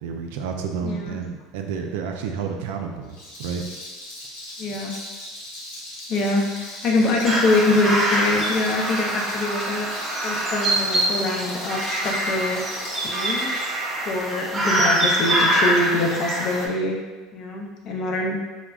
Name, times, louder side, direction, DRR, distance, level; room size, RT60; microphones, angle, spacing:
voice 1, 0.0-3.6, right 6 dB, 80° right, 3 dB, 0.3 m, -30 dB
voice 2, 0.8-1.2 4.6-4.9 6.1-12.6 12.9-13.8 14.1-17.0 17.3-18.4, left 2 dB, 50° left, 0 dB, 0.5 m, -24 dB
Rattle, 3.0-13.7, left 1 dB, 90° left, 0.8 m, -38 dB
sound 1, 7.2-16.7, right 1 dB, 30° right, 0.5 m, -24 dB
3.3 x 2.0 x 2.3 m, 1.3 s
supercardioid pair, 110°, 0 cm